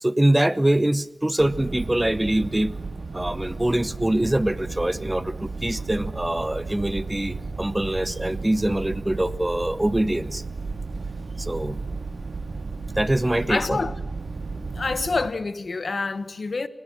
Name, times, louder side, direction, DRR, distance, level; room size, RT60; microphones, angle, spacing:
voice 1, 0.0-2.8 3.1-10.4 11.4-11.8 12.9-13.8, right 1 dB, 15° right, 0.9 m, -24 dB
sound 1, 1.4-15.3, right 3 dB, 75° right, 2.1 m, -34 dB
voice 2, 13.5-13.9 14.7-16.7, left 3 dB, 65° left, 1.3 m, -27 dB
29.5 x 16.0 x 6.0 m
wide cardioid pair, 55°, 0 cm